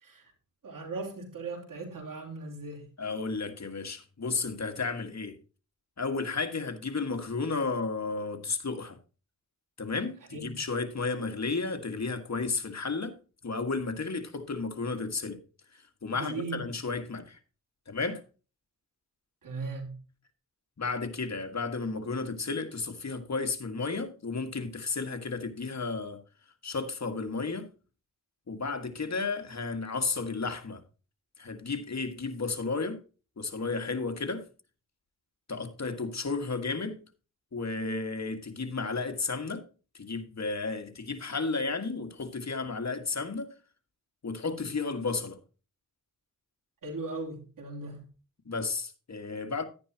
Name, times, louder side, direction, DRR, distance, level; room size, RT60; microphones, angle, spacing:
voice 1, 0.0-0.3 0.6-2.9 10.3-10.5 16.1-16.6 19.4-20.0 46.8-48.1, right 3 dB, 80° right, 3.3 m, -38 dB
voice 2, 3.0-5.4 6.0-9.0 9.8-13.2 13.4-15.4 15.7-17.4 17.9-18.2 20.8-26.2 26.6-27.7 28.5-30.8 31.4-33.0 33.4-34.5 35.5-37.0 37.5-39.7 40.0-43.5 44.2-45.4 48.5-49.7, left 4 dB, 55° left, 1.8 m, -33 dB
11.0 x 9.7 x 2.9 m
cardioid pair, 50°, 32 cm